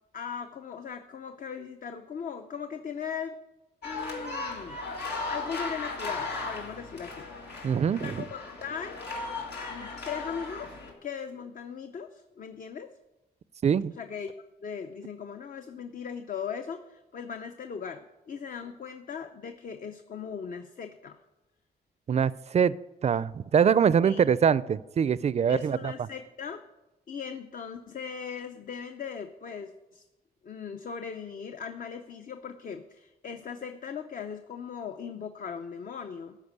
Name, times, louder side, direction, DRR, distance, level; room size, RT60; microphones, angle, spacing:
voice 1, 0.1-3.4 3.8-4.8 5.3-7.3 8.0-9.0 9.7-10.8 11.0-12.9 14.0-21.2 24.0-24.2 25.5-26.6 27.1-30.0 30.4-36.4, left 7 dB, 55° left, 7 dB, 0.6 m, -39 dB
sound 1, 3.8-10.9, left 3 dB, 90° left, 2.0 m, -36 dB
voice 2, 7.6-8.1 13.6-13.9 22.1-22.8 23.0-25.8, right 7 dB, 40° right, 18 dB, 0.4 m, -23 dB
13.0 x 5.1 x 8.1 m, 1.1 s
wide cardioid pair, 120°, 17 cm